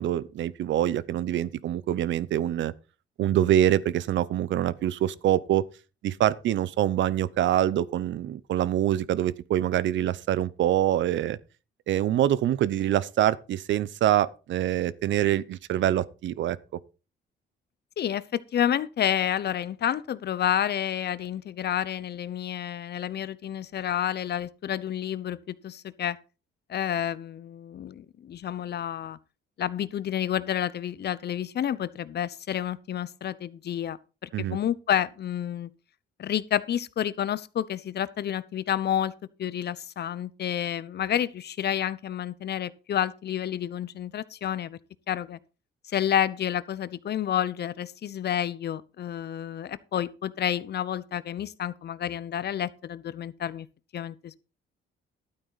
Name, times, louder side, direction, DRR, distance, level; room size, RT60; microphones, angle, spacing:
voice 1, 0.0-2.7 3.2-5.6 6.0-11.4 11.9-16.6 34.3-34.6, right 12 dB, 70° right, 0.7 m, -25 dB
voice 2, 18.0-26.2 26.7-29.2 29.6-34.0 34.2-35.7 36.2-39.1 39.4-44.8 45.1-45.4 45.9-53.7 53.9-54.4, left 10 dB, 55° left, 0.8 m, -29 dB
12.0 x 8.9 x 4.1 m
cardioid pair, 90°, 20 cm